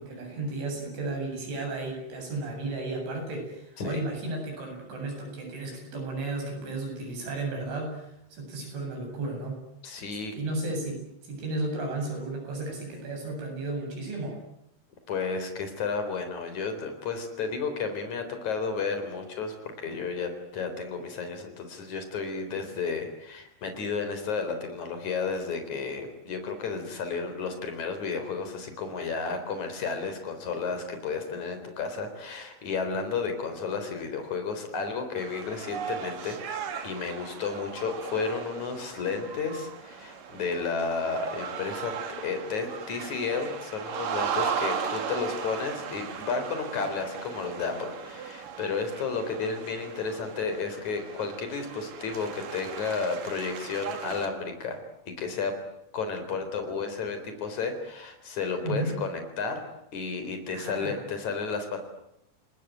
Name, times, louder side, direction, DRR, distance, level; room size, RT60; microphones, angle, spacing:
voice 1, 0.0-9.6 10.3-14.4 58.6-59.0 60.5-61.0, right 2 dB, 90° right, 2 dB, 10.5 m, -34 dB
voice 2, 9.8-10.3 15.1-36.4 36.8-54.8 55.1-55.5 55.9-59.6 59.9-61.8, left 5 dB, 40° left, 7 dB, 5.0 m, -32 dB
sound 1, 35.2-54.3, right 7 dB, 55° right, 3.4 m, -37 dB
30.0 x 19.5 x 9.3 m, 0.80 s
omnidirectional pair, 5.3 m